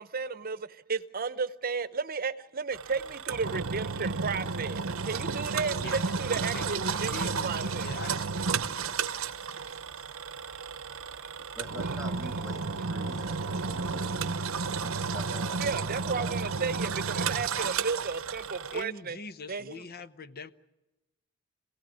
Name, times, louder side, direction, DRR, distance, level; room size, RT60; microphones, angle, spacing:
voice 1, 0.0-7.9 11.2-11.3 15.6-19.2 19.5-19.7, right 4 dB, 45° right, 0.9 m, -33 dB
Engine, 2.7-18.8, right 5 dB, 80° right, 0.9 m, -32 dB
voice 2, 5.8-6.7 6.9-8.3 18.7-20.5, left 3 dB, 50° left, 0.9 m, -43 dB
voice 3, 11.5-16.4, left 1 dB, 5° left, 1.9 m, -46 dB
26.5 x 17.0 x 9.6 m
head